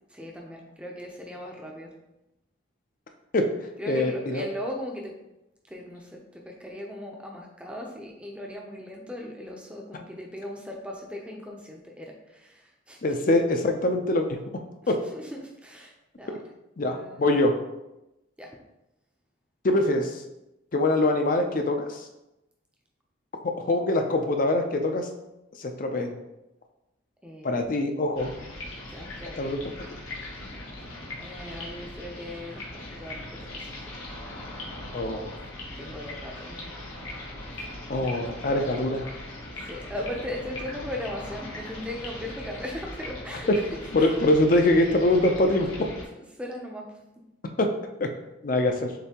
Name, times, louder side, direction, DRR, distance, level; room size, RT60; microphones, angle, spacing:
voice 1, 0.1-1.9 3.8-5.1 5.7-13.0 14.8-16.4 16.8-17.4 18.4-18.5 27.2-27.6 28.9-29.4 30.4-30.7 31.2-33.9 35.8-37.1 37.6-38.3 39.6-44.1 46.1-46.9, left 1 dB, 5° right, 0 dB, 0.6 m, -38 dB
voice 2, 3.9-4.5 13.0-14.4 14.9-15.0 16.8-17.6 19.6-20.2 20.7-22.0 23.7-25.1 25.6-26.2 27.4-28.3 29.4-29.6 34.9-35.5 37.9-39.1 43.5-43.6 43.9-45.9 47.6-47.7 48.0-48.1 48.4-48.9, left 1 dB, 40° left, 5 dB, 0.5 m, -23 dB
sound 1, 28.1-46.0, left 1 dB, 90° left, 1.1 m, -40 dB
6.6 x 2.7 x 2.9 m, 0.94 s
head